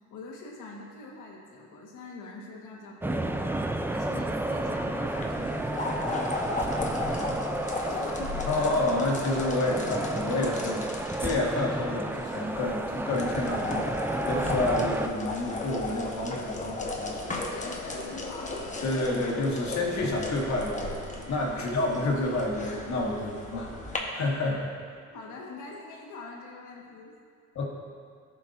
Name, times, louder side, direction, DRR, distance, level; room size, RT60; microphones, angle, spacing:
voice 1, 0.1-8.7 17.4-19.1 21.5-21.7 24.3-24.6 25.1-27.1 27.6-27.7, left 3 dB, 85° left, -1 dB, 1.5 m, -44 dB
sound 1, 3.0-15.1, right 2 dB, 5° right, 0.4 m, -32 dB
sound 2, 5.1-24.0, left 2 dB, 25° left, 1.1 m, -36 dB
voice 2, 8.5-10.9 11.2-13.9 14.3-17.3 18.8-24.6 27.6-27.7, left 2 dB, 65° left, -2 dB, 1.7 m, -29 dB
13.5 x 5.7 x 2.6 m, 2.3 s
cardioid pair, 90°, 30 cm